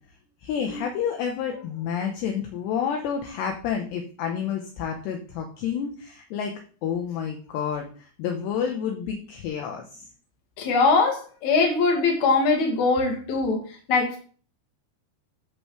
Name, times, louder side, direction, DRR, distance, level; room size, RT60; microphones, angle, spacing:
voice 1, 0.4-10.1, left 7 dB, 75° left, 2 dB, 2.9 m, -29 dB
voice 2, 10.6-13.6 13.9-14.2, left 4 dB, 45° left, 0 dB, 3.1 m, -22 dB
14.0 x 6.9 x 3.3 m, 0.42 s
omnidirectional pair, 5.9 m